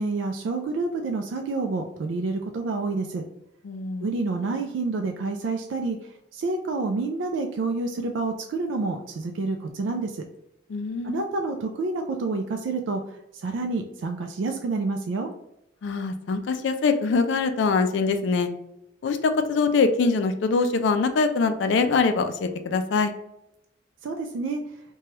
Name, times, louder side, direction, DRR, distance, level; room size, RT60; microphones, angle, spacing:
voice 1, 0.0-3.2 4.0-6.0 6.3-10.2 11.0-15.3 24.0-24.6, right 3 dB, 80° right, 3 dB, 0.3 m, -28 dB
voice 2, 3.6-4.1 10.7-11.2 15.8-18.5 19.0-23.1, left 4 dB, 70° left, 8 dB, 0.3 m, -23 dB
2.9 x 2.2 x 3.0 m, 0.84 s
head